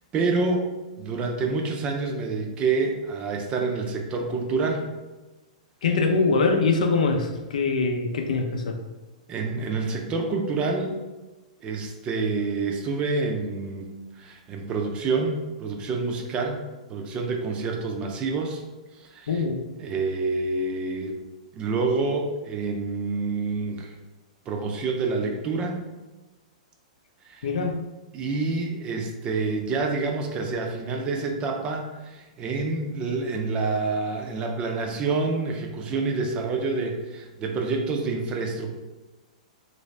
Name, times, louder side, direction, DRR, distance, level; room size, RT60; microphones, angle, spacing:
voice 1, 0.1-0.7 1.0-4.8 9.3-10.9 11.6-13.9 14.2-16.6 16.9-18.6 19.0-19.4 19.8-21.1 21.5-23.9 24.5-25.8 27.2-27.5 28.1-38.7, right 3 dB, 25° right, 2 dB, 0.5 m, -27 dB
voice 2, 5.8-8.8 19.3-19.6 27.4-27.8, left 4 dB, 75° left, 3 dB, 0.5 m, -23 dB
3.1 x 2.6 x 3.2 m, 1.2 s
hypercardioid pair, 130°, 4 cm